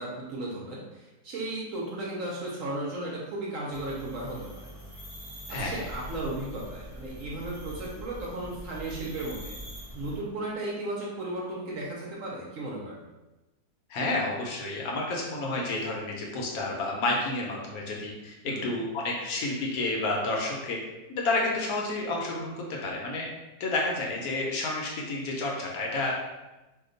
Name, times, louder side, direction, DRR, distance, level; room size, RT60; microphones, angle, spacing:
voice 1, 0.0-4.7 5.5-9.6 9.9-13.0 18.5-18.7, right 2 dB, 65° right, -4 dB, 0.9 m, -35 dB
sound 1, 3.7-10.2, equal, 35° left, 0.6 m, -43 dB
voice 2, 5.5-5.8 13.9-18.3 18.6-20.8 21.1-23.3 23.6-26.1, left 2 dB, 70° left, -1 dB, 1.0 m, -30 dB
2.8 x 2.2 x 3.8 m, 1.1 s
omnidirectional pair, 1.7 m